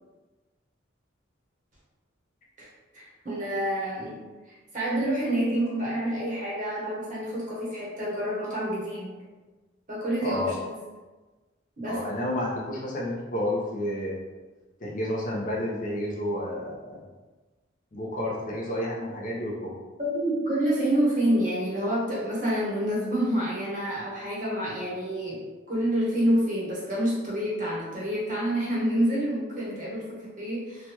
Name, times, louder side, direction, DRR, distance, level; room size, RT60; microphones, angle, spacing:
voice 1, 2.9-4.2 4.7-9.1 9.9-10.7 11.8-12.0 20.0-30.9, right 1 dB, 40° right, -7 dB, 0.8 m, -28 dB
voice 2, 10.2-10.5 11.8-14.2 14.8-17.0 17.9-19.7, left 1 dB, 40° left, -4 dB, 0.5 m, -30 dB
3.2 x 2.2 x 2.8 m, 1.3 s
head